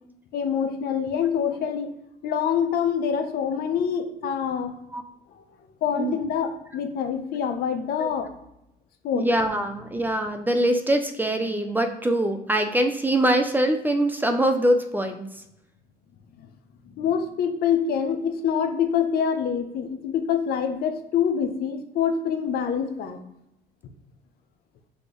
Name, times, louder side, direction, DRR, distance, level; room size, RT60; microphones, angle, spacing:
voice 1, 0.3-1.9 2.2-4.8 5.8-8.3 9.0-9.3 16.9-23.2, left 7 dB, 65° left, 7 dB, 0.6 m, -25 dB
voice 2, 9.1-15.3, right 1 dB, 10° right, 6 dB, 0.4 m, -23 dB
4.0 x 3.4 x 3.0 m, 0.84 s
cardioid pair, 110°, 17 cm